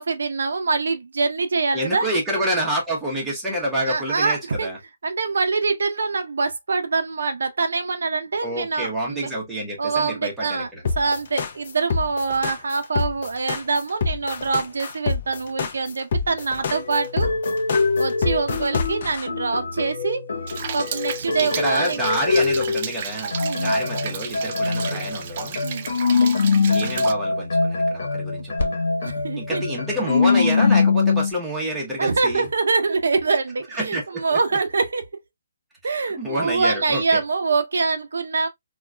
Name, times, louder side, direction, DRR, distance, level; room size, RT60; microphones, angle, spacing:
voice 1, 0.0-2.1 3.8-4.7 5.0-9.3 9.8-10.7 11.0-17.3 18.0-20.3 20.7-22.0 23.4-23.7 25.6-25.9 29.0-29.6 32.0-35.1 35.8-38.5, right 4 dB, 75° right, 0.6 m, -24 dB
voice 2, 1.7-4.8 8.4-10.8 21.5-25.6 26.6-28.8 29.4-32.5 33.7-34.4 36.2-37.2, equal, 5° right, 0.9 m, -27 dB
sound 1, 10.8-19.2, left 4 dB, 40° left, 0.6 m, -26 dB
sound 2, 16.7-23.0 23.3-31.3, left 4 dB, 70° left, 1.1 m, -23 dB
Rain, 20.5-27.1, right 8 dB, 35° right, 0.3 m, -33 dB
3.7 x 2.3 x 2.2 m
hypercardioid pair, 170°, 0 cm